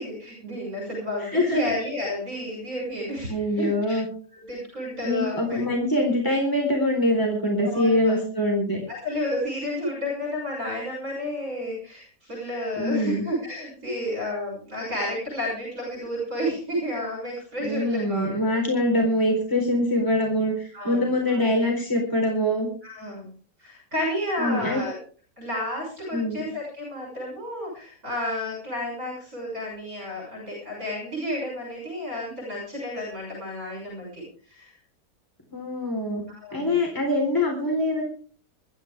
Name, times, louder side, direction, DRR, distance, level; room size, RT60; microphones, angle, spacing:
voice 1, 0.0-4.0 4.3-5.7 7.7-8.1 8.9-18.3 20.7-21.4 22.8-23.3 23.6-25.0 25.4-34.8 36.4-36.8, left 1 dB, 55° right, -3 dB, 7.1 m, -31 dB
voice 2, 1.3-1.6 3.3-4.1 5.0-8.8 12.8-13.2 17.6-22.7 24.4-24.8 26.1-26.4 35.5-36.2 36.5-38.0, left 1 dB, 10° left, 1 dB, 4.2 m, -24 dB
21.5 x 13.5 x 3.6 m, 0.43 s
omnidirectional pair, 1.9 m